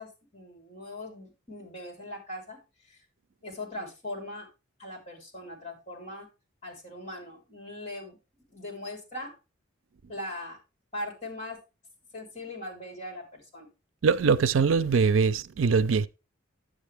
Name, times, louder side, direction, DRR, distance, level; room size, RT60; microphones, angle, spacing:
voice 1, 0.0-2.6 2.9-3.0 3.4-4.5 4.8-6.3 6.6-8.2 8.5-9.4 10.1-10.6 10.9-11.6 12.1-13.7, left 1 dB, 35° left, 3.7 m, -40 dB
voice 2, 14.0-16.1, right 5 dB, 75° right, 0.5 m, -22 dB
9.7 x 8.3 x 3.4 m
head